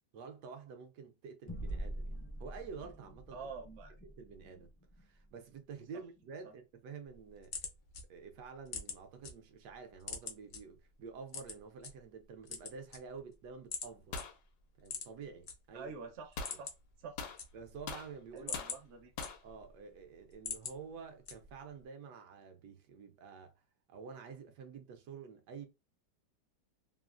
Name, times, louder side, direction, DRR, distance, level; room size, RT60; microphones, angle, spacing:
voice 1, 0.1-3.4 4.0-4.7 5.0-7.6 8.1-14.2 14.8-15.9 17.5-18.5 19.4-23.5 23.9-25.7, right 5 dB, 75° right, 1.1 m, -49 dB
sound 1, 1.5-6.3, right 1 dB, 30° left, 0.4 m, -45 dB
voice 2, 3.3-3.9 6.4-6.5 15.7-16.7 17.0-17.2 18.3-19.1, right 5 dB, 60° right, 0.7 m, -47 dB
sound 2, 7.1-9.3 9.7-10.6 11.3-11.9 12.4-13.3 13.7-13.9 14.2-14.3 14.8-15.5 15.9-16.0 16.3-16.9 17.2-17.9 18.3-19.7 20.1-20.8 21.3-21.7, left 6 dB, 55° left, 0.9 m, -43 dB
sound 3, 14.1-14.4 16.4-16.6 17.2-18.1 18.5-18.8 19.2-19.4, left 4 dB, 75° left, 1.1 m, -42 dB
3.1 x 2.3 x 2.4 m
omnidirectional pair, 1.9 m